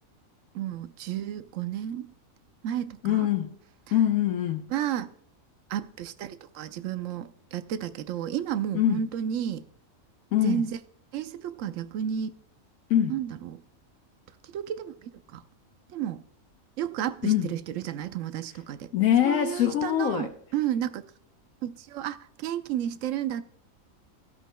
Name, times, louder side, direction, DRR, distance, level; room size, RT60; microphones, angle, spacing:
voice 1, 0.5-2.1 2.6-3.3 4.7-5.1 5.7-9.6 10.4-10.8 11.1-12.3 13.1-13.6 14.5-14.9 15.3-15.4 15.9-16.2 16.8-18.8 19.2-21.0 21.6-22.2 22.4-23.4, right 10 dB, 70° right, 1.0 m, -32 dB
voice 2, 3.0-3.5 3.9-4.7 8.7-9.0 10.3-10.6 12.9-13.2 17.2-17.5 18.9-20.3, left 11 dB, 80° left, 1.1 m, -23 dB
14.5 x 8.1 x 2.2 m
omnidirectional pair, 1.4 m